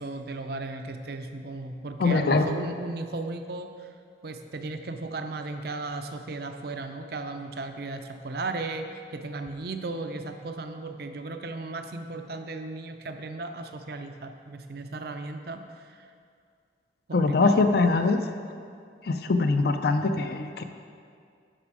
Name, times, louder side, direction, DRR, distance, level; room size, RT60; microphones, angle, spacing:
voice 1, 0.0-3.9 4.2-16.1 17.1-17.7, right 2 dB, 55° right, 6 dB, 0.6 m, -36 dB
voice 2, 2.0-2.5 17.1-18.2 19.0-20.6, left 3 dB, 55° left, 8 dB, 0.4 m, -22 dB
9.9 x 6.0 x 4.8 m, 2.3 s
head